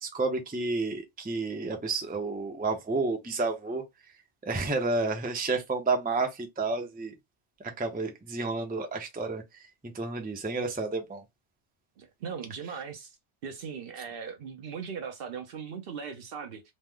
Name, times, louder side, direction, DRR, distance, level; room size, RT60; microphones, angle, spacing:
voice 1, 0.0-3.8 4.4-7.1 7.6-9.6 9.9-11.2, right 3 dB, 10° right, 0.5 m, -30 dB
voice 2, 12.0-13.2 13.4-16.6, right 6 dB, 60° right, 0.7 m, -39 dB
3.0 x 2.1 x 3.5 m
omnidirectional pair, 1.2 m